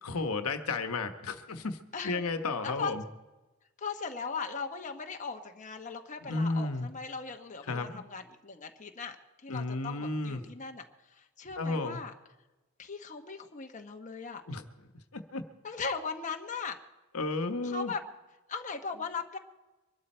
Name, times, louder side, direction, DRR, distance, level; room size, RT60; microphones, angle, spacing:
voice 1, 0.0-1.8 2.0-3.0 6.2-6.9 7.7-8.0 9.5-10.4 11.6-12.0 14.5-14.6 15.1-15.4 17.1-17.9, left 3 dB, 85° left, 8 dB, 1.1 m, -33 dB
voice 2, 3.8-9.2 9.4-10.8 11.1-12.1 12.8-14.4 15.6-16.8 17.6-18.0 18.5-19.4, left 5 dB, 35° left, 4 dB, 1.0 m, -38 dB
24.0 x 12.0 x 4.4 m, 1.1 s
head